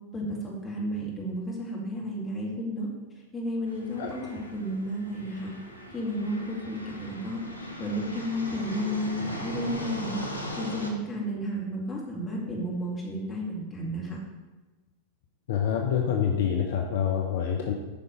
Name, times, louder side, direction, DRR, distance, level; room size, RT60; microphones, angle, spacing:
voice 1, 0.1-2.9 3.3-5.5 5.9-7.4 7.8-10.2 10.6-14.2, equal, 20° left, -3 dB, 2.3 m, -32 dB
sound 1, 3.7-10.9, equal, 90° right, 1.3 m, -39 dB
voice 2, 15.5-17.7, left 8 dB, 55° left, 2 dB, 0.7 m, -26 dB
8.7 x 5.3 x 4.6 m, 1.2 s
figure-of-eight pair, 90°, 0 cm